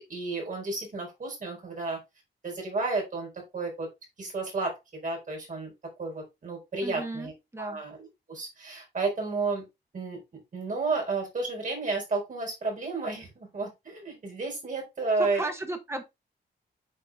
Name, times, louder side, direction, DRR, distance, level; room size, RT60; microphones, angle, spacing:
voice 1, 0.1-2.0 2.4-3.9 4.2-5.7 6.0-9.6 9.9-10.2 10.5-15.4, right 3 dB, 45° right, 4.3 m, -32 dB
voice 2, 6.8-7.8 15.2-16.0, right 1 dB, 15° right, 1.3 m, -35 dB
9.0 x 4.6 x 3.5 m
wide cardioid pair, 180°, 18 cm